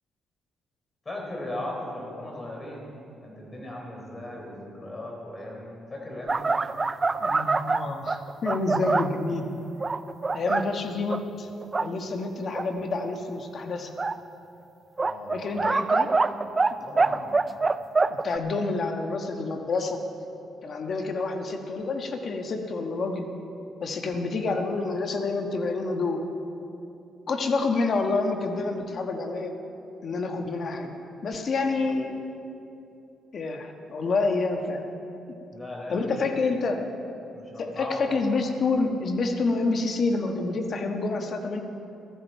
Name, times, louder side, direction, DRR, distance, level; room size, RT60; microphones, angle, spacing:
voice 1, 1.1-2.9 3.2-6.5 15.0-15.6 16.8-17.3 35.5-36.4 37.3-38.2, left 1 dB, 30° left, 0 dB, 3.8 m, -37 dB
sound 1, 6.3-9.2 9.8-10.6 11.1-11.2 11.6-11.9 12.5-12.6 14.0-14.1 15.0-16.7 17.0-18.4, right 3 dB, 25° right, 0.4 m, -24 dB
voice 2, 7.2-9.5 10.3-11.5 11.8-13.9 15.3-16.1 18.1-20.0 20.6-23.3 23.8-26.2 27.3-29.5 30.0-30.9 31.2-32.1 33.3-34.9 35.9-36.8 37.6-41.6, left 3 dB, 50° left, 4 dB, 1.3 m, -28 dB
16.0 x 13.5 x 4.6 m, 2.8 s
cardioid pair, 90°, 0 cm